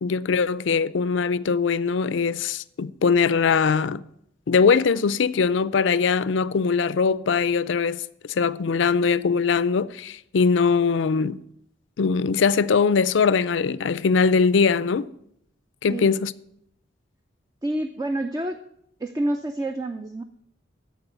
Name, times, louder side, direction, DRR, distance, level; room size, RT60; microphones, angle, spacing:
voice 1, 0.0-4.0 4.5-8.0 8.3-11.4 12.0-15.1 15.8-16.3, left 5 dB, 70° left, 0.4 m, -21 dB
voice 2, 17.6-18.6 19.0-20.2, right 1 dB, 20° right, 0.4 m, -28 dB
13.5 x 4.6 x 8.1 m
head